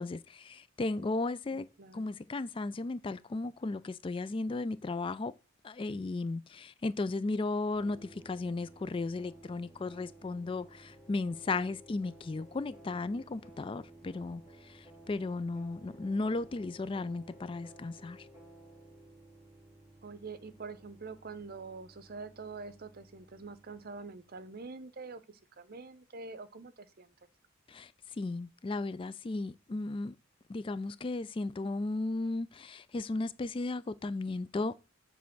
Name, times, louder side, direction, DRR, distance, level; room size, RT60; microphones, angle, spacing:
voice 1, 0.0-1.7 1.9-5.3 5.6-18.3 27.7-27.9 28.2-30.1 30.5-34.7, left 3 dB, 25° left, 0.3 m, -35 dB
voice 2, 1.5-2.1 20.0-27.1, right 4 dB, 45° right, 0.7 m, -45 dB
sound 1, 7.7-24.5, right 1 dB, 15° right, 3.9 m, -56 dB
7.3 x 3.4 x 6.0 m
head